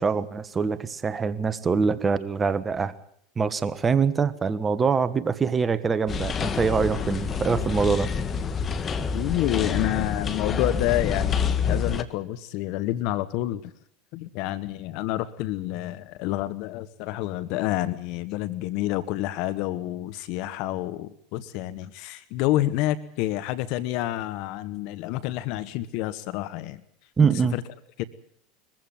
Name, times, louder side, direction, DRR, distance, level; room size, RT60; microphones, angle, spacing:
voice 1, 0.0-2.9 3.4-8.1 27.2-27.5, right 5 dB, 25° right, 14 dB, 1.4 m, -24 dB
sound 1, 6.1-12.0, left 6 dB, 30° left, 1.8 m, -27 dB
voice 2, 9.1-13.7 14.1-26.8 27.2-27.6 28.0-28.1, left 15 dB, 60° left, 15 dB, 1.1 m, -28 dB
22.5 x 15.0 x 9.1 m, 0.68 s
hypercardioid pair, 85°, 0 cm